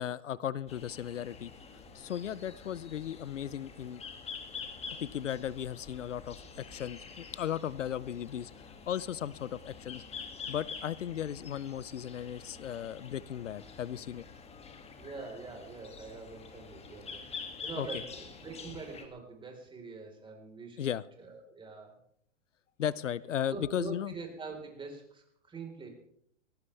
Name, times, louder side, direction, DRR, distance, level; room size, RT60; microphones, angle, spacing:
voice 1, 0.0-1.5 1.9-4.0 5.0-8.5 8.9-10.0 10.5-14.2 17.8-17.9 20.8-21.0 22.8-24.1, left 10 dB, 80° left, 20 dB, 0.8 m, -36 dB
sound 1, 0.7-19.1, left 5 dB, 15° left, 2.3 m, -47 dB
voice 2, 15.0-20.9 21.2-21.9 23.5-25.9, right 4 dB, 15° right, 2 dB, 4.3 m, -44 dB
19.5 x 18.5 x 3.4 m, 0.69 s
hypercardioid pair, 115°, 36 cm